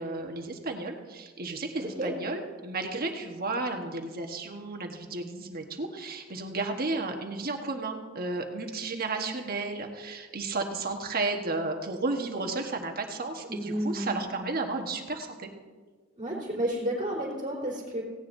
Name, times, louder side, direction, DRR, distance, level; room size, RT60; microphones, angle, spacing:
voice 1, 0.0-15.5, right 3 dB, 45° right, 3 dB, 1.2 m, -33 dB
voice 2, 1.8-2.1 13.5-14.1 16.2-18.0, right 1 dB, 25° right, -5 dB, 3.4 m, -31 dB
17.5 x 17.5 x 2.7 m, 1.4 s
head